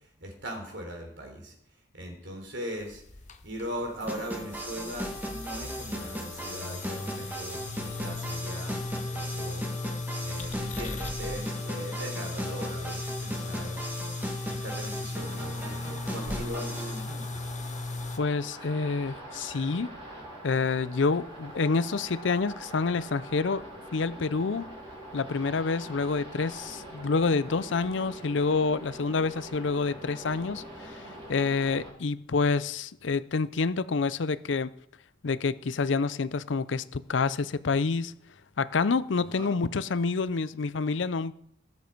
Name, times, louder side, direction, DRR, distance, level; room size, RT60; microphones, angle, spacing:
voice 1, 0.2-1.5 1.9-3.0 3.4-9.6 10.2-13.8 14.4-17.4 39.1-39.5, equal, 65° right, 3.6 m, -39 dB
sound 1, 2.8-18.2, left 3 dB, 40° left, 0.9 m, -37 dB
sound 2, 4.1-17.0, right 1 dB, 10° right, 1.6 m, -37 dB
sound 3, 15.2-31.9, right 1 dB, 30° right, 4.7 m, -44 dB
voice 2, 18.2-19.9 20.4-23.6 23.9-24.7 25.1-34.7 35.2-38.1 38.6-41.3, left 4 dB, 65° left, 0.5 m, -28 dB
19.0 x 7.5 x 4.5 m
head